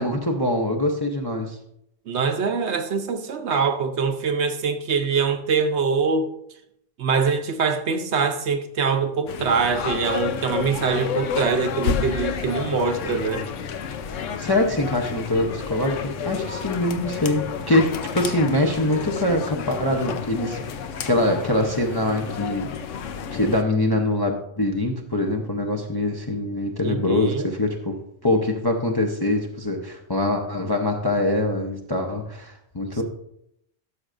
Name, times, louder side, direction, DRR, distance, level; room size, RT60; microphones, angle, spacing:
voice 1, 0.0-1.6 14.4-20.6 21.0-22.7 23.3-28.0 28.2-33.0, left 1 dB, 25° left, 0.6 m, -23 dB
voice 2, 2.1-6.3 7.0-13.5 26.8-27.5, right 5 dB, 65° right, 1.0 m, -24 dB
sound 1, 9.3-23.6, left 7 dB, 85° left, 1.0 m, -30 dB
12.5 x 6.5 x 2.5 m
omnidirectional pair, 1.3 m